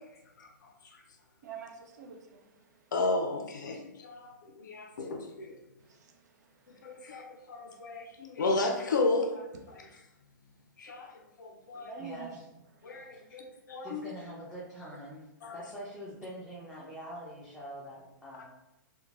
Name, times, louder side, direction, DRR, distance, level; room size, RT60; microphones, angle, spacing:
voice 1, 0.4-1.0 2.9-5.5 6.7-9.8 10.8-12.0 12.8-13.4 13.7-14.0 15.4-15.6 18.4-18.5, left 2 dB, 70° left, 2 dB, 0.4 m, -33 dB
voice 2, 1.4-2.6 5.8-6.1 11.7-12.4 12.9-13.1, right 6 dB, 60° right, 4 dB, 0.5 m, -46 dB
voice 3, 12.0-12.5 13.1-13.4 13.8-15.3 15.5-18.4, equal, ahead, -9 dB, 0.6 m, -44 dB
3.0 x 2.1 x 2.4 m, 0.99 s
figure-of-eight pair, 115°, 10 cm